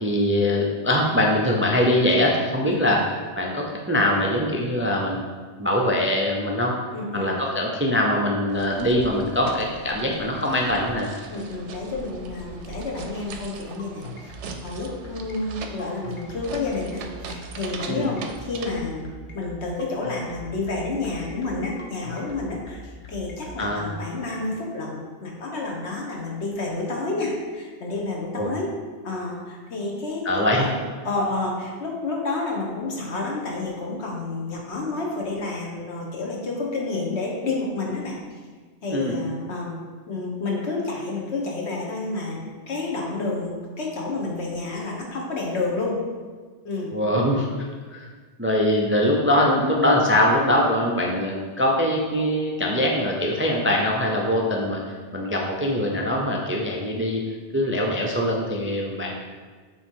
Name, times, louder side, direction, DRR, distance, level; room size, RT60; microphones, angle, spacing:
voice 1, 0.0-5.2 5.6-6.7 7.1-11.1 17.9-18.1 23.6-23.9 28.4-28.5 30.2-30.7 38.9-39.1 46.9-48.1 48.4-54.8 55.1-57.2 57.5-59.1, left 1 dB, 20° right, -1 dB, 0.3 m, -22 dB
voice 2, 6.9-7.3 11.3-14.3 14.6-19.1 19.3-28.7 29.0-30.7 31.0-38.2 38.8-39.8 40.1-46.0 46.6-46.9, left 3 dB, 70° left, -2 dB, 1.4 m, -29 dB
sound 1, 8.5-18.8, right 5 dB, 85° right, 0.9 m, -40 dB
sound 2, 13.8-23.6, left 1 dB, 50° left, 1.1 m, -41 dB
7.2 x 3.1 x 4.5 m, 1.5 s
omnidirectional pair, 1.2 m